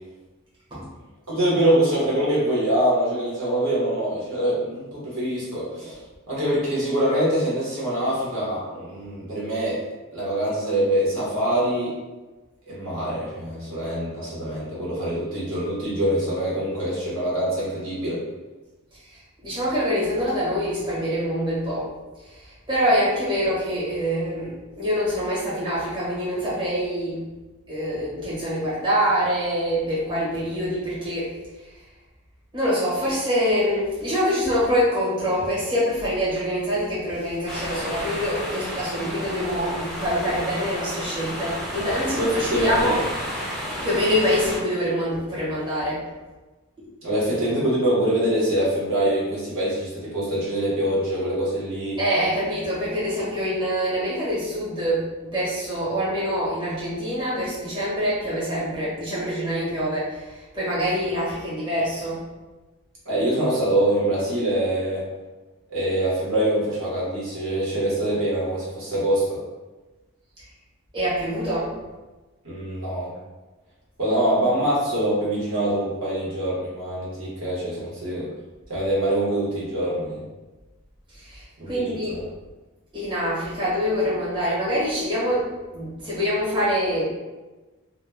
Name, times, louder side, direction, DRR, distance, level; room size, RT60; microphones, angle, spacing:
voice 1, 1.3-6.0 6.3-9.8 10.1-11.9 12.7-18.2 42.2-43.0 47.0-52.0 63.0-65.0 65.7-69.4 72.4-73.1 74.0-78.3 78.7-80.2 81.6-81.8 82.1-82.2, right 1 dB, 60° right, -7 dB, 0.8 m, -24 dB
voice 2, 18.9-21.9 22.2-27.3 27.7-31.3 32.5-43.0 43.8-46.0 52.0-62.2 70.9-71.7 81.1-82.1 82.9-87.0, equal, 20° right, -10 dB, 0.9 m, -25 dB
sound 1, 37.5-44.6, equal, ahead, 0.4 m, -32 dB
2.1 x 2.1 x 3.3 m, 1.2 s
head